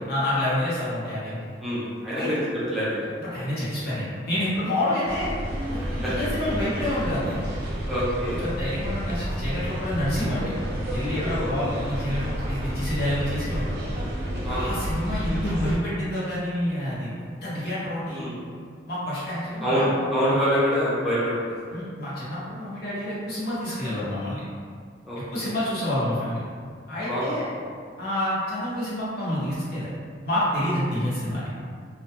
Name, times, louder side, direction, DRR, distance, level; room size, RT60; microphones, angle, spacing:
voice 1, 0.1-1.4 2.1-2.3 3.2-5.3 5.7-7.5 8.4-10.5 10.9-13.7 14.5-17.1 17.4-18.3 18.9-19.9 20.2-20.3 21.7-24.4 25.3-26.4 26.9-27.4 28.0-29.9 30.2-31.5, left 1 dB, 60° left, -9 dB, 0.9 m, -28 dB
voice 2, 1.6-2.3 2.7-3.0 7.8-8.4 11.4-11.6 14.4-14.7 18.1-18.4 19.6-21.8 25.0-25.5 27.1-27.5, equal, ahead, -11 dB, 0.5 m, -26 dB
sound 1, 5.1-15.8, equal, 60° right, 0.5 m, -30 dB
2.3 x 2.1 x 2.8 m, 2.1 s
head